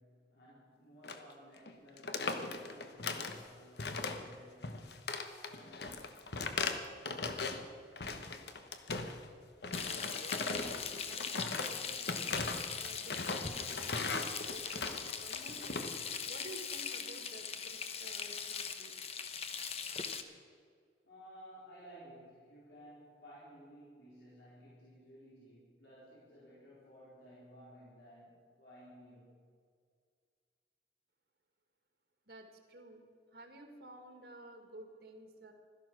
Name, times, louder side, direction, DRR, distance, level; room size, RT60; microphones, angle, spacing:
voice 1, 0.0-5.2 5.4-6.2 21.0-29.4, equal, 85° left, -8 dB, 4.5 m, -57 dB
sound 1, 1.0-1.3 1.6-1.7 2.0-3.4 3.8-4.4 4.6-7.6 8.0-9.3 9.6-15.9, left 3 dB, 70° left, 1.1 m, -38 dB
Frying (food), 9.7-20.2, left 6 dB, 35° left, 0.9 m, -41 dB
voice 2, 9.8-15.9 16.3-18.9 32.3-33.0 33.3-35.5, right 1 dB, 60° right, 4 dB, 2.1 m, -53 dB
16.5 x 13.0 x 6.3 m, 2.1 s
head